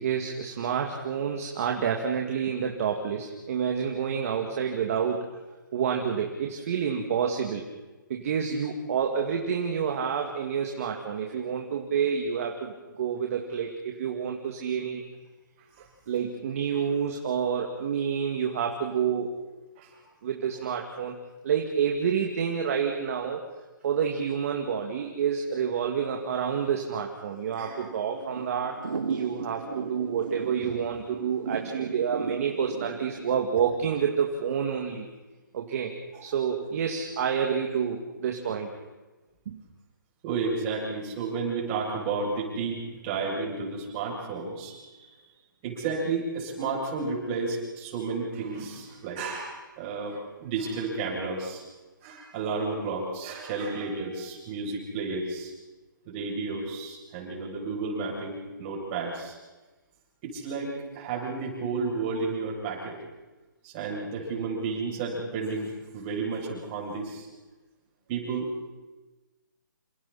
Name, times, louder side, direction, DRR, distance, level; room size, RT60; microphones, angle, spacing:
voice 1, 0.0-5.3 5.7-7.6 8.1-15.0 16.1-19.3 20.2-21.2 21.4-23.4 23.8-28.8 29.1-35.1 35.5-35.9 36.2-38.7 39.5-39.6, right 7 dB, 45° right, 2 dB, 2.5 m, -28 dB
Thunder / Rain, 26.3-33.4, right 5 dB, 70° right, 3.3 m, -37 dB
voice 2, 40.2-45.1 45.6-51.6 52.0-55.5 56.1-59.4 60.2-62.9 63.6-67.3 68.1-68.5, right 4 dB, 30° right, -2 dB, 8.0 m, -32 dB
28.5 x 27.5 x 4.4 m, 1.2 s
hypercardioid pair, 150°, 11 cm